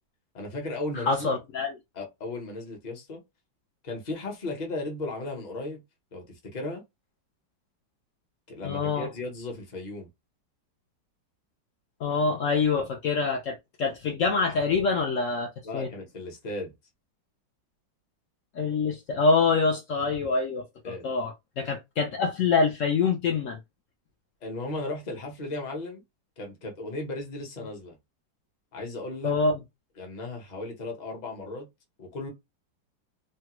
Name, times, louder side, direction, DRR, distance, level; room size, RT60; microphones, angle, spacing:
voice 1, 0.3-1.3 1.9-3.2 3.8-5.8 6.1-6.8 8.5-10.1 15.6-16.7 20.8-21.1 24.4-26.0 26.4-28.0 28.7-29.3 30.0-31.7 32.0-32.3, left 2 dB, 40° left, 0.6 m, -35 dB
voice 2, 0.9-1.8 8.6-9.1 12.0-15.9 18.5-23.6 29.2-29.6, left 4 dB, 80° left, 0.6 m, -26 dB
3.2 x 2.2 x 2.9 m
omnidirectional pair, 2.0 m